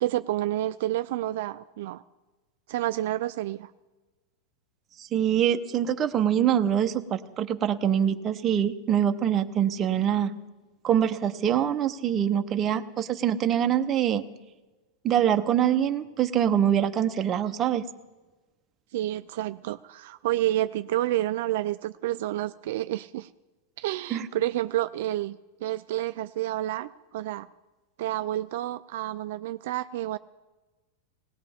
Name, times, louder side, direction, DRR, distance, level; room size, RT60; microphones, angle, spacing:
voice 1, 0.0-2.0 2.7-3.7 18.9-23.3 23.8-27.5 28.0-30.2, right 14 dB, 65° right, 10 dB, 0.4 m, -29 dB
voice 2, 5.0-10.3 10.8-14.2 15.0-17.8 24.1-24.2, right 9 dB, 25° right, 7 dB, 0.8 m, -24 dB
18.5 x 18.0 x 3.6 m, 1.2 s
supercardioid pair, 140°, 0 cm